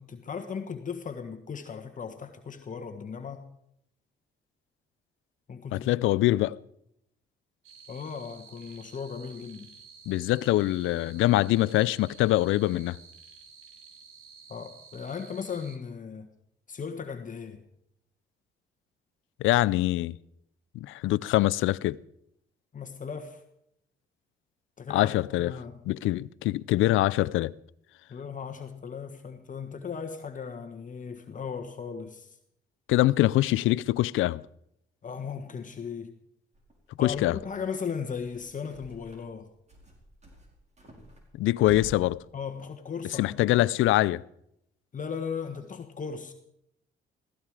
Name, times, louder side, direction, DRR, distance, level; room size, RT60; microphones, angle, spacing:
voice 1, 0.0-3.5 5.5-6.4 7.9-9.7 14.5-16.3 16.7-17.6 22.7-23.4 24.8-25.8 28.1-32.4 35.0-36.2 37.0-39.5 42.3-43.6 44.9-46.3, left 6 dB, 40° left, 1.4 m, -37 dB
voice 2, 5.7-6.6 10.1-13.0 19.4-20.2 20.8-22.0 24.9-25.5 25.9-27.5 32.9-34.4 37.0-37.4 41.3-42.2 43.2-44.2, left 16 dB, 85° left, 0.5 m, -24 dB
sound 1, 7.6-15.8, right 5 dB, 85° right, 2.0 m, -52 dB
sound 2, 36.5-37.6 37.9-39.4 39.7-41.9, right 1 dB, 35° right, 5.2 m, -49 dB
16.5 x 16.0 x 4.8 m
cardioid pair, 90°, 20 cm